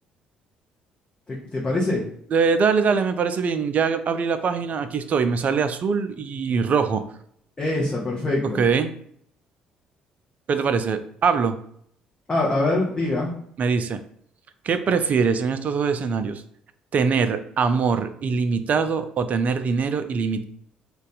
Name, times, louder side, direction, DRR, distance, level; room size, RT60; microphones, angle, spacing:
voice 1, 1.3-2.0 7.6-8.6 12.3-13.3, left 2 dB, 25° left, -4 dB, 0.9 m, -24 dB
voice 2, 2.3-7.0 8.5-8.9 10.5-11.6 13.6-14.0 14.6-16.4 16.9-20.4, right 5 dB, 45° right, 9 dB, 0.4 m, -22 dB
2.5 x 2.3 x 3.9 m, 0.66 s
figure-of-eight pair, 50°, 4 cm